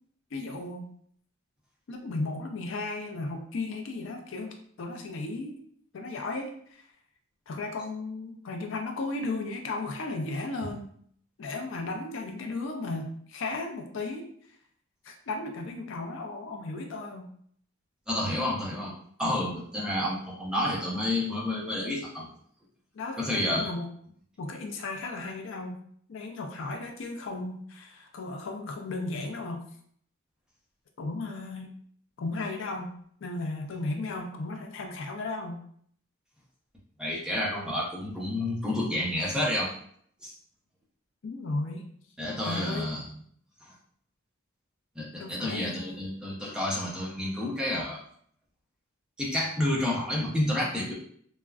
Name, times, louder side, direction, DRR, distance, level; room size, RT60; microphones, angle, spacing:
voice 1, 0.3-0.9 1.9-5.6 5.9-6.9 7.5-10.9 11.4-14.3 15.0-17.3 22.9-23.9 24.4-25.8 26.1-29.6 31.0-31.7 32.2-32.9 33.2-35.6 41.2-41.9 42.4-42.9 45.2-46.1, left 2 dB, 65° left, 4 dB, 0.4 m, -35 dB
voice 2, 18.1-18.9 19.2-22.3 23.2-23.7 37.0-39.7 40.2-40.3 42.2-43.1 43.6-43.7 45.0-48.0 49.2-50.9, left 1 dB, 5° right, -5 dB, 0.5 m, -30 dB
3.5 x 2.1 x 2.3 m, 0.63 s
head